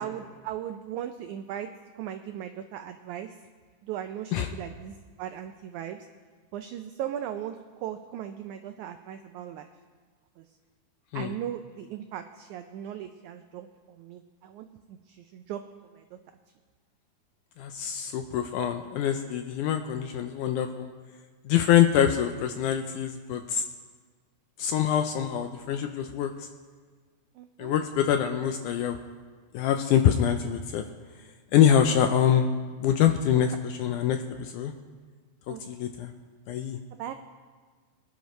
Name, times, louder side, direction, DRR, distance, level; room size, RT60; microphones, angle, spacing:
voice 1, 0.0-1.7 2.0-3.4 3.8-6.1 6.5-9.7 10.4-10.5 11.1-15.6 15.9-16.2 27.3-27.8 33.3-33.4 35.5-35.6 37.0-37.1, right 10 dB, 85° right, 7 dB, 1.7 m, -38 dB
voice 2, 17.6-20.9 21.5-23.7 24.6-26.3 27.6-29.0 29.5-30.8 31.5-32.5 32.8-34.7 35.5-36.1 36.5-36.8, left 9 dB, 80° left, 6 dB, 1.8 m, -25 dB
23.5 x 9.9 x 3.1 m, 1.5 s
omnidirectional pair, 4.0 m